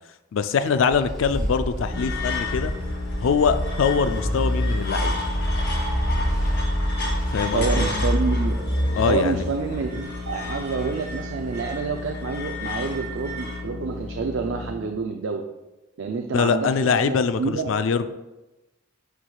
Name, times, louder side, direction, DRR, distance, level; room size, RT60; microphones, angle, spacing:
voice 1, 0.3-2.7 3.2-5.1 7.3-7.9 9.0-9.5 16.3-18.1, left 6 dB, 75° left, 11 dB, 0.4 m, -23 dB
sound 1, 0.7-11.5, equal, ahead, 1.9 m, -27 dB
sound 2, 1.8-14.7, left 3 dB, 20° left, 1.7 m, -36 dB
sound 3, 1.9-13.6, left 2 dB, 55° left, 1.6 m, -35 dB
voice 2, 7.5-8.6 9.0-15.4 16.0-17.7, right 5 dB, 65° right, 4 dB, 0.4 m, -28 dB
9.7 x 4.7 x 2.3 m, 1.0 s
head